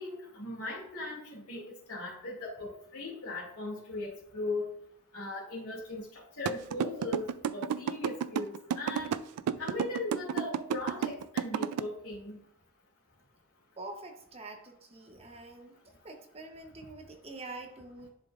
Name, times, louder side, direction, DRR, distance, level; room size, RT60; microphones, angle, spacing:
voice 1, 0.0-4.7 5.1-7.3 7.5-9.2 9.6-12.4, left 2 dB, 75° left, -3 dB, 2.2 m, -38 dB
sound 1, 6.5-11.8, right 8 dB, 85° right, 0.3 m, -30 dB
voice 2, 13.8-15.8 16.0-18.1, right 2 dB, 25° right, 4 dB, 0.8 m, -45 dB
10.5 x 5.1 x 2.4 m, 0.75 s
head